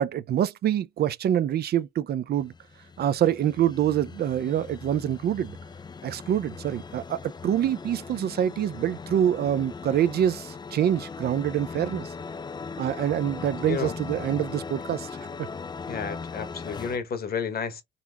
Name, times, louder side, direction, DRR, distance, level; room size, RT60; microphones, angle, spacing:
voice 1, 0.0-2.5 3.0-5.6 6.0-12.1 12.8-15.3, right 10 dB, 55° right, 0.4 m, -26 dB
sound 1, 2.4-17.0, left 5 dB, 20° left, 0.3 m, -39 dB
voice 2, 15.9-17.8, left 6 dB, 50° left, 1.1 m, -31 dB
4.0 x 2.8 x 2.3 m
cardioid pair, 90°, 20 cm